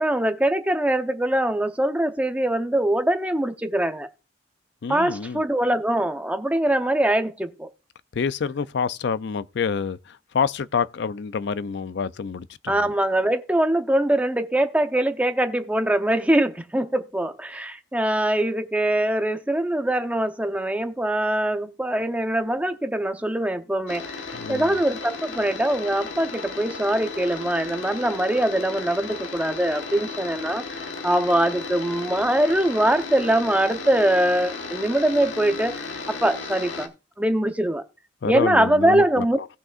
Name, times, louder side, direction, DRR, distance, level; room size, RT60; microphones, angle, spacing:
voice 1, 0.0-4.1 4.9-7.7 12.7-24.2 24.5-36.9 37.2-37.8 38.2-39.4, right 1 dB, 10° right, 0.7 m, -23 dB
voice 2, 4.8-5.4 8.1-12.9 24.3-24.7 38.2-39.5, left 6 dB, 65° left, 0.4 m, -27 dB
sound 1, 23.9-36.9, left 4 dB, 80° left, 1.4 m, -35 dB
18.5 x 6.2 x 2.4 m
head